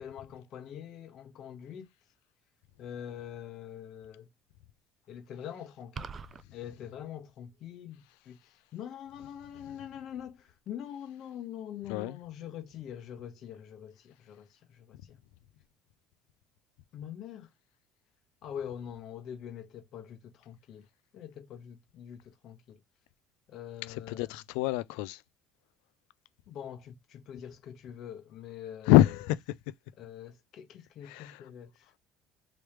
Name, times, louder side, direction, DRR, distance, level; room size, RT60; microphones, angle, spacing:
voice 1, 0.0-1.9 2.8-4.3 5.1-6.1 6.5-15.2 16.9-17.5 18.4-20.8 21.1-22.8 23.5-24.3 26.5-28.9 30.0-32.0, left 9 dB, 55° left, 1.2 m, -44 dB
sound 1, 6.0-6.4, right 5 dB, 30° right, 0.3 m, -40 dB
voice 2, 23.9-25.2 28.9-29.6 31.0-31.4, left 15 dB, 90° left, 0.3 m, -26 dB
3.1 x 3.0 x 3.3 m
cardioid pair, 125°, 0 cm